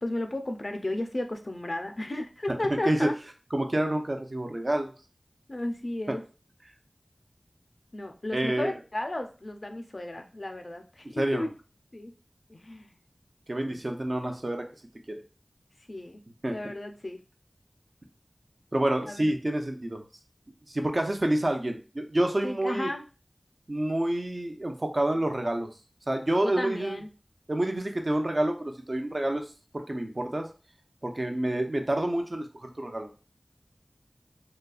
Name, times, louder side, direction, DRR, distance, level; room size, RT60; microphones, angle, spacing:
voice 1, 0.0-3.1 5.5-6.2 7.9-11.5 11.9-12.1 12.5-12.9 13.7-13.8 15.9-16.2 16.5-17.2 19.1-19.3 22.4-23.1 26.4-27.1, left 1 dB, 50° left, 5 dB, 0.5 m, -34 dB
voice 2, 3.5-4.9 8.3-8.7 11.1-11.4 13.5-14.6 16.4-16.6 18.7-20.0 20.7-22.9 23.7-25.7 26.1-27.0 27.5-30.5 31.0-33.1, right 1 dB, 45° right, 4 dB, 0.6 m, -28 dB
4.0 x 2.3 x 2.3 m, 0.34 s
wide cardioid pair, 60°, 0 cm